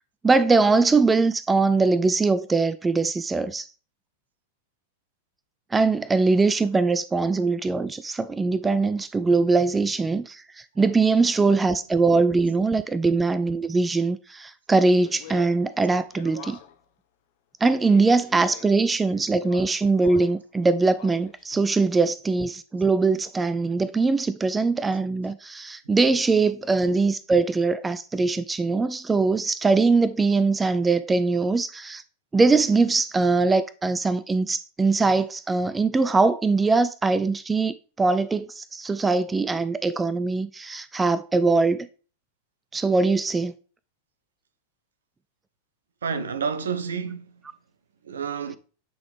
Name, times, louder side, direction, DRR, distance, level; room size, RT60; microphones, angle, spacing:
voice 1, 0.2-3.7 5.7-16.6 17.6-32.0 32.3-41.9 42.7-43.5, right 3 dB, 10° right, 0.3 m, -22 dB
Speech, 14.7-16.9 17.7-18.9 19.3-20.4 20.8-21.5, left 10 dB, 50° left, 0.9 m, -45 dB
voice 2, 46.0-47.4 48.0-48.6, right 6 dB, 65° right, 0.7 m, -30 dB
8.5 x 3.9 x 3.3 m
figure-of-eight pair, 90°, 0 cm